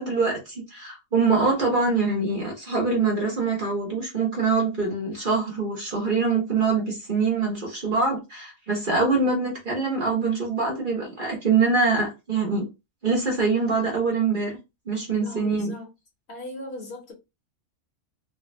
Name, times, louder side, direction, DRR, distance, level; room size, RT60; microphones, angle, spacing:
voice 1, 0.0-12.7 13.0-14.6 14.9-15.7, right 4 dB, 45° right, 1.2 m, -24 dB
voice 2, 15.2-15.9 16.3-17.1, left 2 dB, 55° left, 1.5 m, -38 dB
3.3 x 2.4 x 3.1 m
omnidirectional pair, 1.3 m